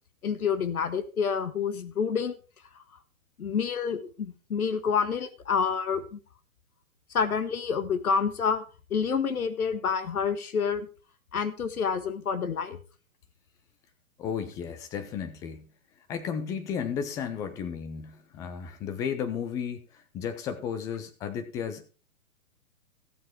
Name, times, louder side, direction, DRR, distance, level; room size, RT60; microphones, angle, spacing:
voice 1, 0.2-2.3 3.4-6.2 7.1-8.6 8.9-10.9 11.3-12.8, left 6 dB, 80° left, 12 dB, 1.6 m, -28 dB
voice 2, 14.2-15.6 16.1-19.8 20.1-21.9, left 7 dB, 10° left, 10 dB, 0.5 m, -33 dB
15.0 x 7.5 x 4.5 m, 0.36 s
hypercardioid pair, 140°, 43 cm